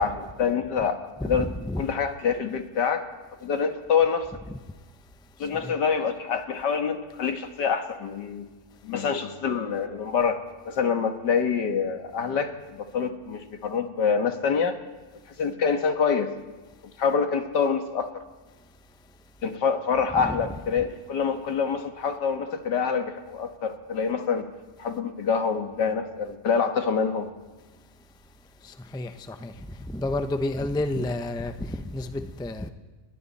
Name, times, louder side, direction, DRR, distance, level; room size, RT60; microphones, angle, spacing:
voice 1, 0.0-1.5 1.8-3.1 3.4-4.3 5.4-8.5 8.8-10.4 10.7-14.8 15.4-16.3 17.0-18.1 19.4-24.4 24.8-27.3, left 6 dB, 85° left, 2.1 m, -26 dB
voice 2, 1.2-1.8 4.5-4.6 5.6-5.7 20.1-20.6 28.9-29.5 29.9-32.7, left 1 dB, 5° left, 0.4 m, -30 dB
28.5 x 22.0 x 4.2 m
omnidirectional pair, 1.8 m